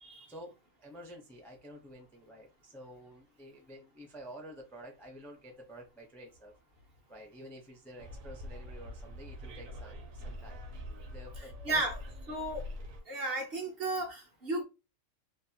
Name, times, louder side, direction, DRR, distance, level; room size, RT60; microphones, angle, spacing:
voice 1, 0.8-6.5 7.1-10.6 11.1-11.8, equal, 5° left, 0.3 m, -50 dB
Bus, 8.0-13.0, left 1 dB, 80° right, 1.0 m, -44 dB
voice 2, 12.3-12.7 13.1-14.6, right 2 dB, 55° right, 0.7 m, -34 dB
2.7 x 2.2 x 2.7 m
omnidirectional pair, 1.4 m